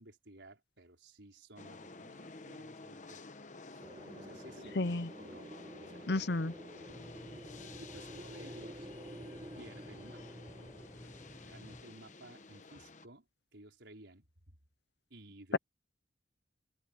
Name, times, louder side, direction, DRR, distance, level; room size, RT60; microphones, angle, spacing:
voice 1, 0.0-3.2 3.7-3.9 4.1-5.5 5.8-6.2 6.8-7.1 7.7-8.9 9.6-10.2 11.2-13.3 13.5-14.3 15.1-15.6, right 1 dB, 80° right, 5.0 m, -56 dB
sound 1, 1.6-13.1, left 3 dB, 40° left, 1.1 m, -52 dB
Wind, 3.8-12.5, right 1 dB, 25° right, 5.5 m, -51 dB
voice 2, 4.7-5.1 6.1-6.5, left 2 dB, 65° left, 0.8 m, -32 dB
sound 2, 6.8-11.8, left 1 dB, 15° left, 1.2 m, -54 dB
open air
head